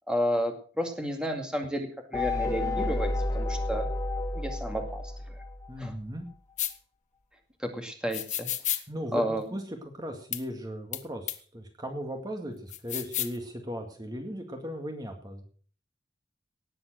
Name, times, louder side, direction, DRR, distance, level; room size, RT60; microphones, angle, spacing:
voice 1, 0.1-3.9 4.3-5.0 5.3-5.4 5.8-5.9 7.6-8.5 9.1-9.5, equal, 5° right, 4 dB, 2.2 m, -31 dB
sound 1, 2.1-5.9, left 2 dB, 20° left, 1.5 m, -31 dB
voice 2, 5.7-6.2 8.9-15.4, equal, 25° right, 4 dB, 1.9 m, -37 dB
sound 2, 6.6-6.7 8.1-8.8 10.3-10.4 10.9-11.0 11.3-11.4 12.7-13.4, left 12 dB, 45° left, 1.2 m, -31 dB
18.5 x 7.8 x 6.2 m, 0.43 s
head